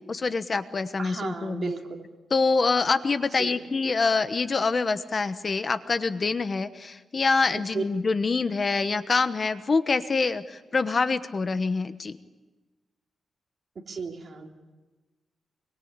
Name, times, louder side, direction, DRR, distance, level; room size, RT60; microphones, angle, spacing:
voice 1, 0.1-1.7 2.3-12.2, left 4 dB, 35° left, 11 dB, 1.1 m, -25 dB
voice 2, 1.0-2.0 3.4-3.6 7.7-7.8 13.9-14.5, right 4 dB, 45° right, 2 dB, 3.2 m, -34 dB
25.5 x 23.5 x 8.9 m, 1.2 s
wide cardioid pair, 120°, 0 cm